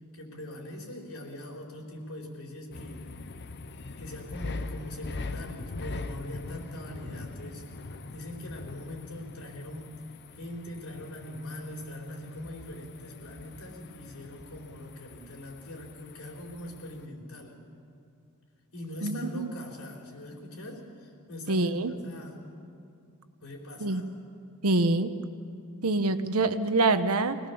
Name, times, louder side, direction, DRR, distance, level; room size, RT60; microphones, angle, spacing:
voice 1, 0.1-3.1 4.0-7.7 8.1-10.0 10.4-17.6 18.7-22.5 23.4-24.0, left 1 dB, 70° left, 1 dB, 4.0 m, -42 dB
sound 1, 2.7-17.0, left 3 dB, 50° left, 0.8 m, -42 dB
voice 2, 19.0-19.5 21.5-21.9 23.8-24.0 24.6-25.1 25.8-27.4, right 2 dB, 75° right, 10 dB, 1.1 m, -25 dB
24.5 x 18.5 x 7.1 m, 2.6 s
head